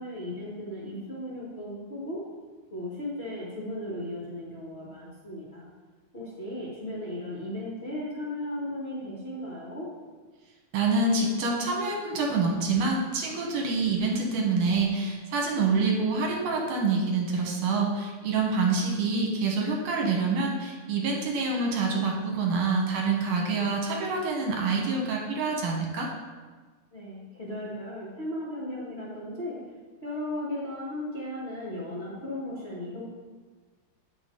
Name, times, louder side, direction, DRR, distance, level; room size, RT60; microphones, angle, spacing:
voice 1, 0.0-2.2 2.7-5.6 6.1-9.9 26.9-29.6 30.0-33.0, left 1 dB, 60° left, -7 dB, 0.6 m, -36 dB
voice 2, 10.7-26.1, right 4 dB, 70° right, -1 dB, 2.7 m, -26 dB
9.2 x 6.3 x 3.8 m, 1.4 s
omnidirectional pair, 4.1 m